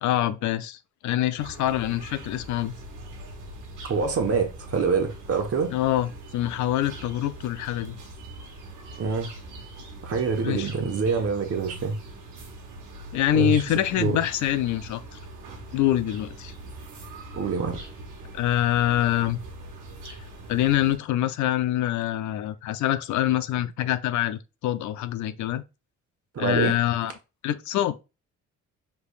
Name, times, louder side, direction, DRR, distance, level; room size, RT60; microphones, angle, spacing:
voice 1, 0.0-2.7 5.7-8.0 10.4-10.7 13.1-15.2 15.7-16.5 18.3-19.4 20.5-25.6 26.4-27.1 27.4-28.0, left 12 dB, 70° left, 0.5 m, -25 dB
sound 1, 1.4-21.0, right 2 dB, 90° right, 1.2 m, -42 dB
voice 2, 3.8-5.7 9.0-9.3 10.0-11.9 13.3-13.6 14.0-14.1 17.3-17.8 26.3-26.8, right 5 dB, 50° right, 1.2 m, -25 dB
4.9 x 3.4 x 2.4 m
cardioid pair, 90°, 30 cm